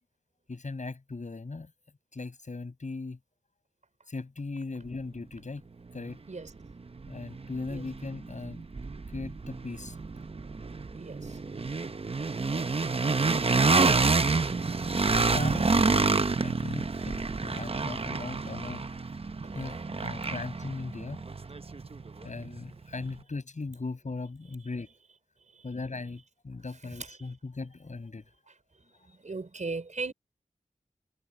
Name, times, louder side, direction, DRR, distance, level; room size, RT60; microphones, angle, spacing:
voice 1, 0.5-1.7 2.1-3.2 4.1-5.6 5.9-6.2 7.1-8.6 9.1-10.0 15.1-18.8 19.5-21.2 22.2-24.9 25.6-28.2, left 3 dB, 65° left, 7.7 m, -38 dB
sound 1, 6.1-6.2 6.6-22.6, right 3 dB, 45° right, 0.8 m, -28 dB
voice 2, 11.0-11.4 14.1-14.3 19.3-19.6 27.0-27.1 29.1-30.1, right 3 dB, 65° right, 5.2 m, -38 dB
wide cardioid pair, 55°, 14 cm